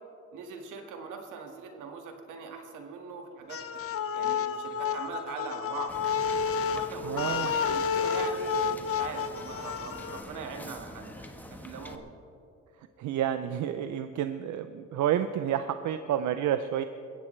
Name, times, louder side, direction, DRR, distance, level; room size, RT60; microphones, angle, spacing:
voice 1, 0.3-3.6 4.1-5.9 6.7-12.1, right 5 dB, 85° right, 3 dB, 2.0 m, -41 dB
sound 1, 3.5-10.2, left 6 dB, 50° left, 0.8 m, -30 dB
Wind / Boat Water vehicle, 5.9-12.0, left 1 dB, 5° left, 1.3 m, -46 dB
voice 2, 7.0-7.5 13.0-16.8, right 10 dB, 70° right, 10 dB, 0.6 m, -29 dB
21.5 x 16.0 x 3.3 m, 2.7 s
cardioid pair, 90°, 30 cm